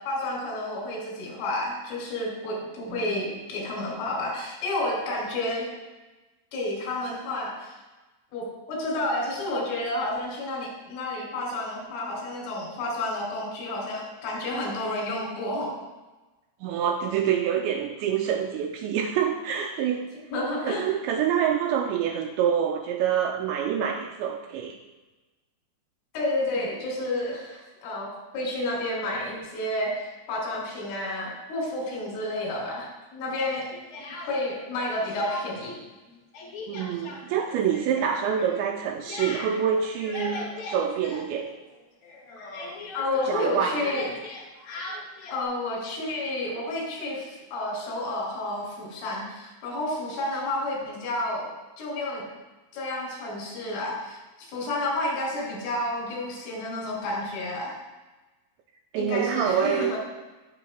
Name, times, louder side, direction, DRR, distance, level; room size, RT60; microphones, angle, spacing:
voice 1, 0.0-5.7 6.5-7.8 8.3-15.8 20.3-20.8 26.1-33.7 34.3-35.8 42.9-44.1 45.3-51.5 51.8-52.2 52.7-54.2 54.5-57.7 59.0-60.0, left 1 dB, 85° left, -3 dB, 5.4 m, -30 dB
voice 2, 2.9-3.2 16.6-20.1 20.7-24.8 36.7-41.5 43.3-44.0 58.9-60.0, right 8 dB, 85° right, 4 dB, 2.6 m, -26 dB
Speech, 33.3-34.6 34.9-35.8 36.1-41.8 42.0-45.4, left 2 dB, 70° left, 1.7 m, -39 dB
17.5 x 6.6 x 2.2 m, 1.1 s
omnidirectional pair, 5.5 m